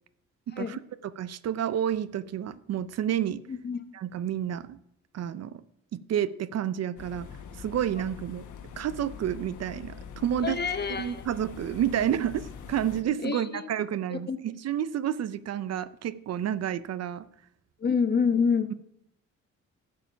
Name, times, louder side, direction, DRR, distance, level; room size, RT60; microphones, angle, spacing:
voice 1, 0.5-3.4 3.9-4.8 5.1-5.6 5.9-7.3 7.6-8.4 8.8-10.6 11.0-17.3, right 10 dB, 55° right, 16 dB, 0.6 m, -30 dB
voice 2, 3.5-3.8 10.4-11.2 13.2-13.6 14.1-14.4 17.8-18.7, left 5 dB, 35° left, 10 dB, 1.1 m, -27 dB
sound 1, 7.0-13.0, left 7 dB, 75° left, 1.3 m, -44 dB
11.0 x 7.7 x 5.6 m, 0.77 s
cardioid pair, 90°, 30 cm